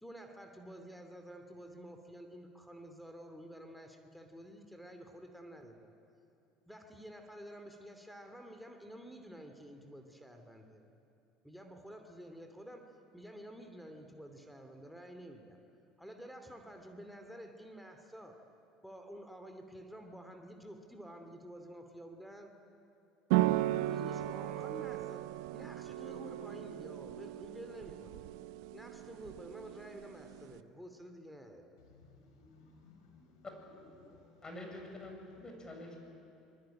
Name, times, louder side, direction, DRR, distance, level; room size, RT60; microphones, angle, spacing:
voice 1, 0.0-5.9 6.7-10.8 11.4-15.6 16.0-18.4 18.8-22.5 23.7-25.3 25.5-28.2 28.7-31.6, equal, ahead, 4 dB, 2.8 m, -50 dB
sound 1, 23.3-30.6, right 16 dB, 70° right, 0.7 m, -36 dB
voice 2, 31.8-33.5 34.0-34.4, left 3 dB, 75° left, 3 dB, 5.6 m, -60 dB
voice 3, 34.4-36.0, left 2 dB, 25° left, 2 dB, 7.4 m, -46 dB
26.0 x 21.0 x 9.0 m, 2.8 s
hypercardioid pair, 65°, 3 cm